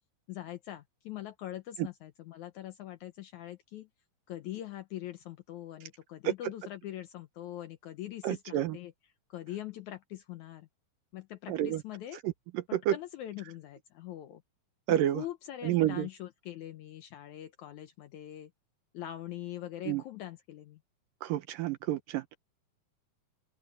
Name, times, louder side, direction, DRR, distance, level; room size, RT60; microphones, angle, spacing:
voice 1, 0.3-3.9 4.3-8.9 9.3-10.7 11.1-12.2 12.7-14.4 14.9-18.5 18.9-20.8, left 13 dB, 75° left, 1.8 m, -42 dB
voice 2, 8.2-8.8 11.5-11.8 12.2-12.9 14.9-15.2 15.6-16.1 19.9-20.0 21.2-22.4, right 12 dB, 75° right, 2.3 m, -29 dB
open air
omnidirectional pair, 4.3 m